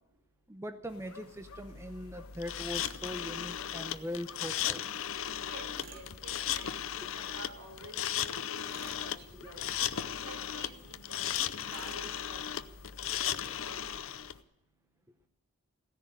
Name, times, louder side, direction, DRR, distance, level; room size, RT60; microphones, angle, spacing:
voice 1, 0.5-4.8 9.3-9.5, equal, 10° right, 8 dB, 0.7 m, -41 dB
sound 1, 0.9-14.4, left 2 dB, 85° left, 1.1 m, -53 dB
sound 2, 2.4-14.3, left 10 dB, 70° left, 0.6 m, -36 dB
Tools, 2.7-3.1 5.7-6.1 8.7-9.1 11.7-12.1, right 4 dB, 40° right, 1.2 m, -51 dB
voice 2, 5.4-6.7 7.1-9.6 10.0-12.1 12.8-12.9 13.2-14.0, right 2 dB, 80° right, 3 dB, 4.3 m, -50 dB
16.0 x 10.5 x 8.0 m, 0.92 s
head